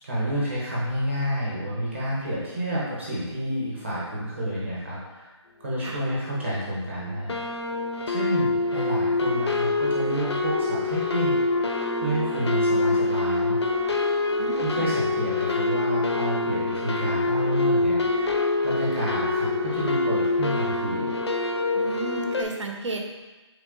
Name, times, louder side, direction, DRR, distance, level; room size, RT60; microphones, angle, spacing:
voice 1, 0.0-5.3 5.6-7.3 8.1-13.6 14.3-21.1, equal, 25° right, -7 dB, 0.8 m, -29 dB
sound 1, 6.1-6.2 6.4-6.8 7.3-22.4, left 3 dB, 65° left, 0.5 m, -25 dB
voice 2, 14.4-14.9 21.7-23.0, right 2 dB, 85° right, 2 dB, 0.8 m, -33 dB
3.8 x 3.4 x 3.7 m, 1.2 s
hypercardioid pair, 180°, 15 cm